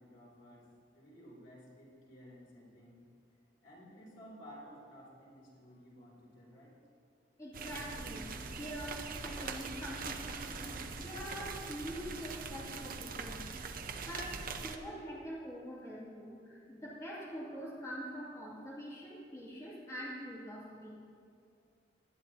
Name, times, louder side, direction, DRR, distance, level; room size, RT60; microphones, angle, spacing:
voice 1, 0.0-3.1 3.6-6.8, equal, 75° left, -5 dB, 3.4 m, -55 dB
voice 2, 7.4-13.4 14.0-21.0, equal, 15° left, -8 dB, 2.6 m, -44 dB
sound 1, 7.5-14.8, right 4 dB, 50° right, 0.7 m, -42 dB
18.0 x 11.5 x 2.9 m, 2.2 s
head